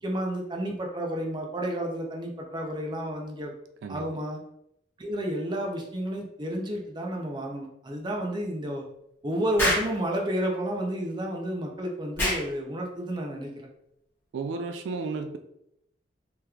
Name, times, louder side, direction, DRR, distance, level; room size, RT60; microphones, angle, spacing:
voice 1, 0.0-3.5 3.9-4.4 5.0-8.8 9.2-13.7, right 1 dB, 25° right, 0 dB, 0.5 m, -31 dB
Explosion, 9.6-9.9 12.2-12.5, left 1 dB, 15° left, 1.0 m, -25 dB
voice 2, 14.3-15.4, right 4 dB, 90° right, 7 dB, 0.3 m, -33 dB
3.5 x 2.9 x 2.3 m, 0.78 s
head